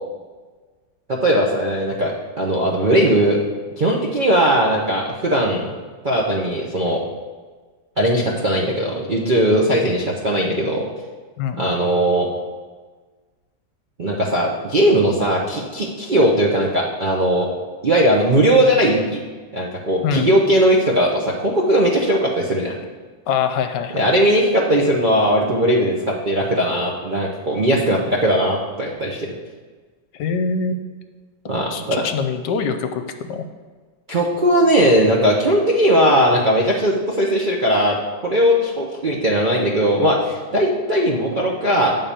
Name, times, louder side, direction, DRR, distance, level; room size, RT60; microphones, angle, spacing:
voice 1, 1.1-2.1 2.4-3.4 3.8-5.7 6.0-7.0 8.0-10.8 11.6-12.3 14.0-17.5 17.8-19.2 19.5-22.7 23.9-29.3 31.5-32.1 34.1-38.0 38.2-42.0, equal, 50° right, -5 dB, 0.6 m, -18 dB
voice 2, 20.0-20.4 23.3-24.1 30.1-30.9 31.7-33.0 33.3-33.4, left 5 dB, 75° left, 7 dB, 1.2 m, -23 dB
8.7 x 3.8 x 6.8 m, 1.4 s
omnidirectional pair, 2.0 m